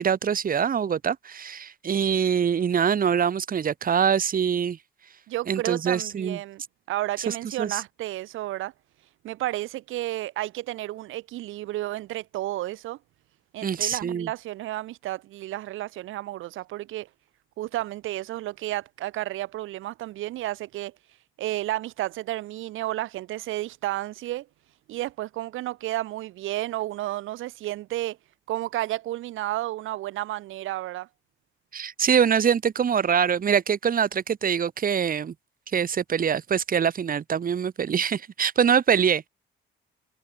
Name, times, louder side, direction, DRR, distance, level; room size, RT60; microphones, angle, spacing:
voice 1, 0.0-4.8 5.5-6.4 7.3-7.8 13.6-14.3 31.7-35.3 35.7-39.3, right 7 dB, 45° right, 1.7 m, -24 dB
voice 2, 5.3-6.6 6.9-8.7 9.2-13.0 13.5-17.1 17.6-20.9 21.4-24.5 24.9-28.2 28.5-31.1, right 15 dB, 85° right, 1.9 m, -32 dB
cardioid pair, 90°, 20 cm